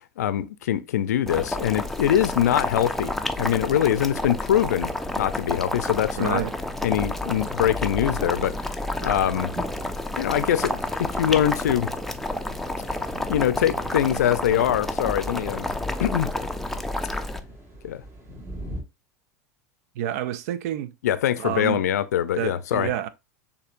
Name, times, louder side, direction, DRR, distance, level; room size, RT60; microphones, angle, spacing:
voice 1, 0.2-6.4 6.8-9.5 10.2-11.9 13.3-15.7 16.0-16.3 17.8-18.0 21.0-22.9, left 10 dB, 80° left, 0.5 m, -23 dB
Boiling, 1.3-17.4, left 1 dB, 5° left, 0.5 m, -30 dB
sound 1, 3.1-18.8, equal, 30° right, 1.8 m, -43 dB
voice 2, 6.2-6.5 20.0-20.9 21.4-21.8 22.4-23.1, right 11 dB, 65° right, 0.5 m, -28 dB
6.7 x 2.8 x 2.4 m
hypercardioid pair, 85°, 9 cm